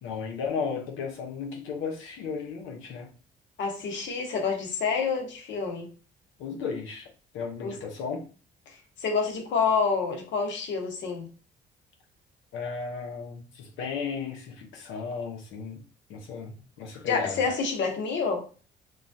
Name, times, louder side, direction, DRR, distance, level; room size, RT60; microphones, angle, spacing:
voice 1, 0.0-3.1 6.4-7.1 7.3-8.3 12.5-15.8 16.1-17.4, left 5 dB, 90° left, 0.8 m, -35 dB
voice 2, 3.6-5.9 7.6-7.8 8.7-11.3 17.1-18.4, left 5 dB, 65° left, 1.0 m, -28 dB
3.0 x 2.4 x 2.6 m
cardioid pair, 90°, 20 cm